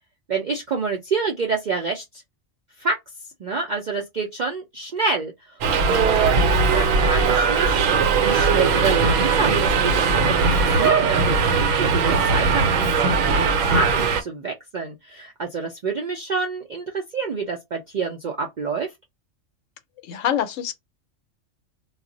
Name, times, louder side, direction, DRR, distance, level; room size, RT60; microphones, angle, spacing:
voice 1, 0.3-2.0 2.8-3.0 3.4-5.6 5.9-7.9 8.2-11.3 11.8-13.1 13.4-18.9, right 4 dB, 60° right, 0.4 m, -27 dB
Subway metro underground, 5.6-14.2, right 4 dB, 80° right, 1.0 m, -19 dB
voice 2, 20.0-20.7, left 10 dB, 75° left, 0.9 m, -25 dB
2.4 x 2.0 x 3.7 m
omnidirectional pair, 1.3 m